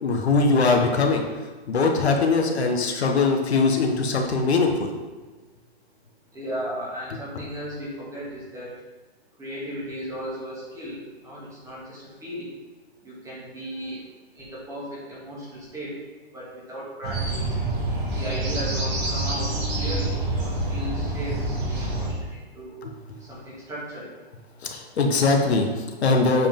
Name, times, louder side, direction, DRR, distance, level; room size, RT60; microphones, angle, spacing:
voice 1, 0.0-1.2 1.7-4.9 22.8-22.9 24.6-26.5, left 3 dB, 75° left, 2 dB, 1.3 m, -21 dB
voice 2, 6.3-8.7 9.4-12.5 13.0-14.0 14.3-16.0 16.3-17.6 18.1-22.8 23.2-24.1, equal, 10° right, -7 dB, 2.0 m, -36 dB
sound 1, 17.0-22.1, right 2 dB, 40° right, 2.2 m, -27 dB
7.6 x 4.9 x 3.7 m, 1.3 s
hypercardioid pair, 140°, 33 cm